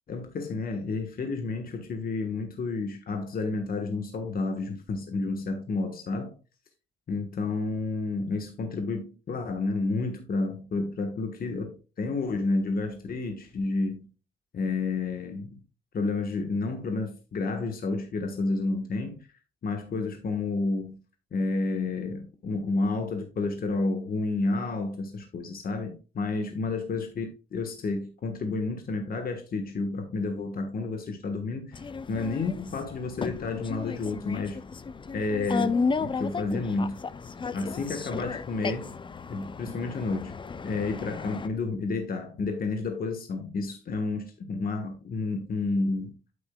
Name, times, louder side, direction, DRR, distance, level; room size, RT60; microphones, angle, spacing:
voice 1, 0.1-6.3 7.1-14.0 14.5-15.6 15.9-19.3 19.6-21.0 21.3-34.6 35.1-37.0 37.5-38.9 39.3-40.4 40.6-46.1, left 3 dB, 50° left, 1.4 m, -30 dB
sound 1, 31.7-41.5, left 5 dB, 25° left, 0.5 m, -34 dB
8.7 x 7.8 x 2.3 m
cardioid pair, 90°, 20 cm